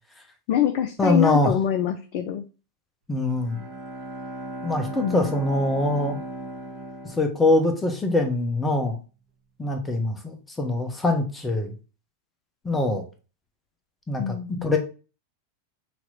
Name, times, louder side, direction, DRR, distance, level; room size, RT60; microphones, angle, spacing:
voice 1, 0.5-2.4 5.0-5.4 14.2-14.7, left 9 dB, 45° left, 7 dB, 0.4 m, -25 dB
voice 2, 1.0-1.5 3.1-3.6 4.6-6.2 7.0-9.0 9.6-11.7 12.6-13.0 14.1-14.4 14.6-14.8, left 2 dB, 10° left, 4 dB, 1.0 m, -23 dB
Bowed string instrument, 3.3-8.0, right 2 dB, 40° right, 1.3 m, -37 dB
5.8 x 3.0 x 2.6 m, 0.34 s
figure-of-eight pair, 90°, 0 cm